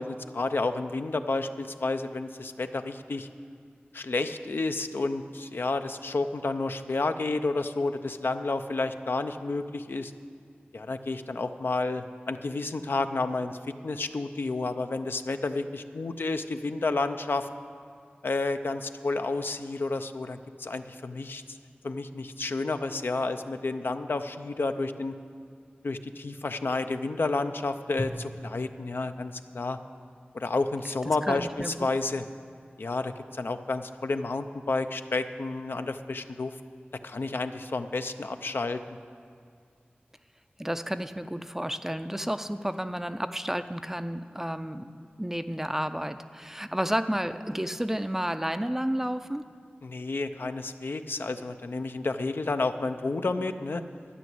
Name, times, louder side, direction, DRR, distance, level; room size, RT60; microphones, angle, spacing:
voice 1, 0.0-3.3 3.9-10.1 10.7-17.5 18.2-21.6 21.8-25.1 25.8-29.8 30.3-32.2 32.8-36.5 37.0-38.8 49.8-53.8, left 3 dB, 70° left, 8 dB, 0.5 m, -30 dB
Drum, 28.0-30.4, left 1 dB, 30° left, 0.9 m, -41 dB
voice 2, 31.2-31.7 40.6-49.4, equal, 10° right, 10 dB, 0.4 m, -31 dB
12.5 x 6.1 x 9.4 m, 2.2 s
wide cardioid pair, 65°, 4 cm